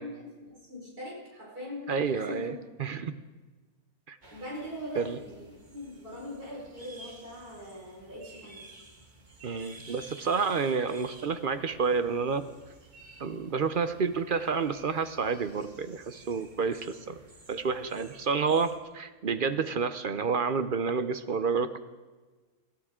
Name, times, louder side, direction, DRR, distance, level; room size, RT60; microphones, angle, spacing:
voice 1, 0.0-2.5 4.3-8.6, left 1 dB, 75° right, -5 dB, 5.4 m, -41 dB
voice 2, 1.9-2.5 2.8-3.2 4.1-4.2 5.0-5.2 9.4-12.4 13.2-17.2 17.5-21.8, right 5 dB, 50° right, 11 dB, 0.6 m, -29 dB
sound 1, 4.2-18.8, right 2 dB, 30° right, 1.7 m, -53 dB
22.5 x 14.5 x 3.7 m, 1.3 s
omnidirectional pair, 1.6 m